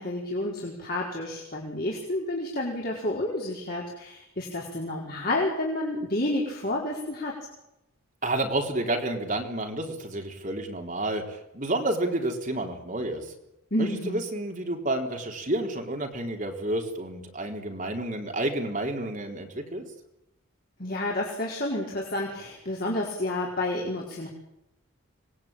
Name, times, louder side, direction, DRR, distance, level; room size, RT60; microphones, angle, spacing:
voice 1, 0.0-7.3 13.7-14.2 20.8-24.3, left 1 dB, 45° left, -2 dB, 4.6 m, -30 dB
voice 2, 8.2-13.3 13.8-19.8, right 1 dB, 35° right, 3 dB, 3.8 m, -30 dB
26.0 x 20.5 x 9.0 m, 0.90 s
head